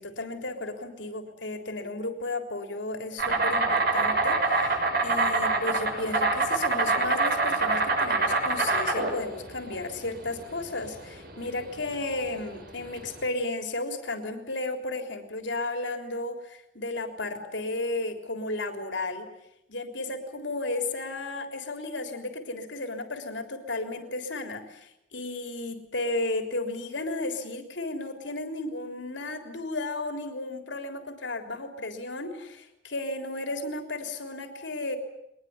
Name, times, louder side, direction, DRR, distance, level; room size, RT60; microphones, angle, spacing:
voice 1, 0.0-19.3 19.7-35.0, left 2 dB, 70° left, 6 dB, 3.7 m, -34 dB
Insect, 3.2-13.2, right 3 dB, 50° right, 6.2 m, -25 dB
23.0 x 21.0 x 9.7 m, 0.81 s
head